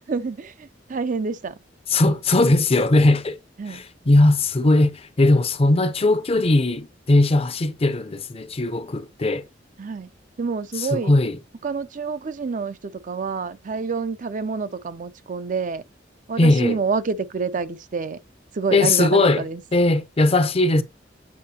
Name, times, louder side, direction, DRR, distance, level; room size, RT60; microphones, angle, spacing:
voice 1, 0.0-1.5 3.6-3.8 9.8-10.1 10.4-11.1 11.6-15.8 16.3-18.2 18.5-19.6, right 4 dB, 45° right, 0.5 m, -28 dB
voice 2, 1.9-3.4 3.7-9.4 10.8-11.4 16.4-16.8 18.7-19.5 19.7-20.8, left 2 dB, 35° left, 0.6 m, -19 dB
8.5 x 4.7 x 2.8 m
head